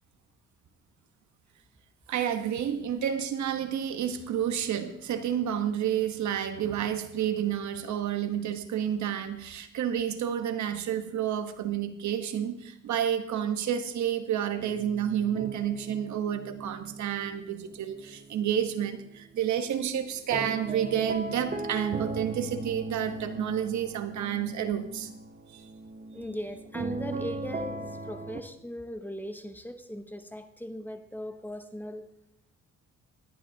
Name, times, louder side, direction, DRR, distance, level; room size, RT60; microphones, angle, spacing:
voice 1, 2.1-25.1 25.5-25.6, right 9 dB, 70° right, 8 dB, 1.2 m, -30 dB
sound 1, 14.6-18.6 18.9-28.4, right 3 dB, 25° right, 0.8 m, -38 dB
voice 2, 26.1-32.0, left 1 dB, 5° left, 7 dB, 1.0 m, -39 dB
17.5 x 11.5 x 2.8 m, 0.79 s
cardioid pair, 90°, 30 cm